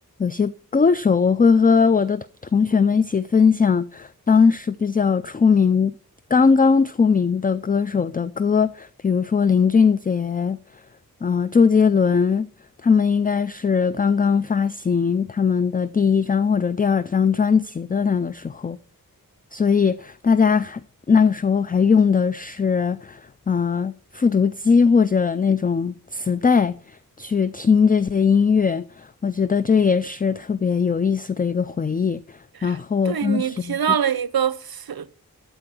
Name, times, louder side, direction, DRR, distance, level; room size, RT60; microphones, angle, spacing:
voice 1, 0.2-5.9 6.3-10.6 11.2-12.5 12.8-18.8 19.5-33.8, left 5 dB, 25° left, 0.3 m, -20 dB
voice 2, 33.1-35.1, right 8 dB, 80° right, 0.6 m, -24 dB
13.0 x 4.6 x 6.0 m
wide cardioid pair, 50°, 36 cm